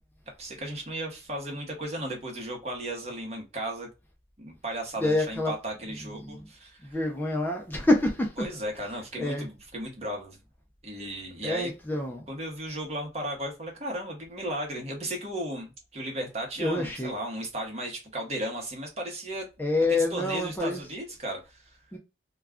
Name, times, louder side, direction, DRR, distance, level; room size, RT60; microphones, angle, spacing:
voice 1, 0.4-3.9 4.4-7.0 8.4-10.4 10.8-11.7 12.3-19.5 19.9-21.8, right 1 dB, 40° right, 0.9 m, -35 dB
voice 2, 5.0-5.5 5.9-6.5 6.8-8.4 9.2-9.5 11.0-11.1 11.4-12.3 16.6-17.1 19.6-20.8 21.9-22.0, left 2 dB, 10° left, 0.4 m, -27 dB
2.3 x 2.2 x 3.5 m
head